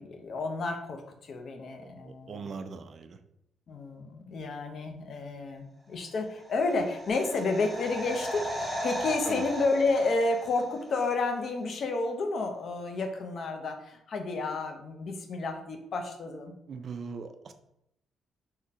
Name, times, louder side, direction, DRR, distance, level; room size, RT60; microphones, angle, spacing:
voice 1, 0.0-2.5 3.7-16.5, left 3 dB, 55° left, 5 dB, 0.5 m, -31 dB
voice 2, 1.8-3.2 9.3-9.4 16.7-17.5, right 5 dB, 50° right, 8 dB, 0.3 m, -40 dB
sound 1, 6.3-11.1 11.4-11.5, equal, 10° right, 0.8 m, -37 dB
3.6 x 2.1 x 2.7 m, 0.79 s
cardioid pair, 90°, 0 cm